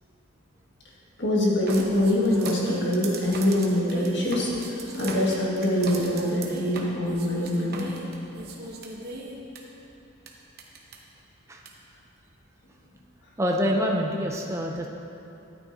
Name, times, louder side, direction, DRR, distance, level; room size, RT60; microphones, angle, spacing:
voice 1, 1.2-4.5 4.9-7.9, left 1 dB, 55° left, -5 dB, 1.9 m, -24 dB
sound 1, 1.7-9.6 10.3-10.4 10.6-10.9 11.6-11.7, right 2 dB, 45° right, 0.9 m, -37 dB
voice 2, 13.4-14.9, equal, 15° right, 0 dB, 0.5 m, -26 dB
13.0 x 8.8 x 2.7 m, 2.8 s
head